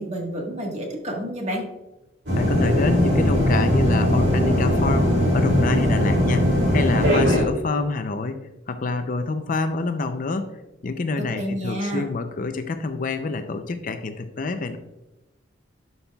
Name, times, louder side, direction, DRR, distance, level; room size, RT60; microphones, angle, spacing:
voice 1, 0.0-1.6 11.2-12.0, equal, 35° right, 0 dB, 1.4 m, -29 dB
sound 1, 2.3-7.4, left 1 dB, 70° right, 2.5 m, -20 dB
voice 2, 2.4-8.4 8.7-14.8, left 3 dB, 45° left, 9 dB, 0.5 m, -27 dB
11.0 x 5.5 x 2.3 m, 0.96 s
head